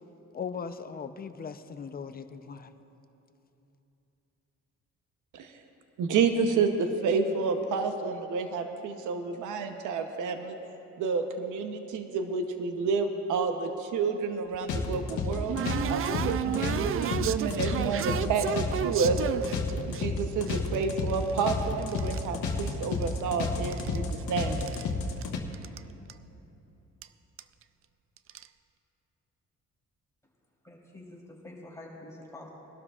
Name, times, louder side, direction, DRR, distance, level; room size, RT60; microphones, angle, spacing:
voice 1, 0.3-2.7, left 6 dB, 30° left, 10 dB, 0.6 m, -38 dB
voice 2, 6.0-10.6 11.0-15.6 15.9-19.2 19.5-19.6 19.9-24.6, right 5 dB, 85° right, 6 dB, 0.9 m, -29 dB
sound 1, 14.5-20.0 20.5-22.3 22.5-23.3 23.5-24.9 25.2-25.3 25.5-25.8 26.1-26.2 27.0-27.1 27.4-27.6 28.2-28.5, right 9 dB, 45° right, 0.4 m, -33 dB
sound 2, 14.7-25.4, left 4 dB, 80° left, 1.3 m, -31 dB
voice 3, 30.6-32.5, left 1 dB, 10° left, -4 dB, 3.4 m, -47 dB
22.0 x 12.0 x 2.4 m, 3.0 s
cardioid pair, 90°, 30 cm